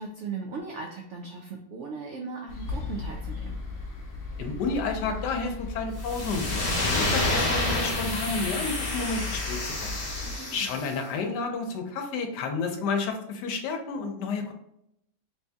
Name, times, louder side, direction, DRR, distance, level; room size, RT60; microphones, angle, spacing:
voice 1, 0.0-3.6 10.2-10.7, right 4 dB, 80° right, 1 dB, 0.6 m, -38 dB
sound 1, 2.5-10.4, left 4 dB, 55° left, 1.1 m, -37 dB
voice 2, 4.4-10.0 10.5-14.5, left 4 dB, 85° left, 4 dB, 1.3 m, -31 dB
sound 2, 6.0-10.9, left 2 dB, 35° left, 0.7 m, -29 dB
3.6 x 2.7 x 3.4 m, 0.78 s
omnidirectional pair, 1.8 m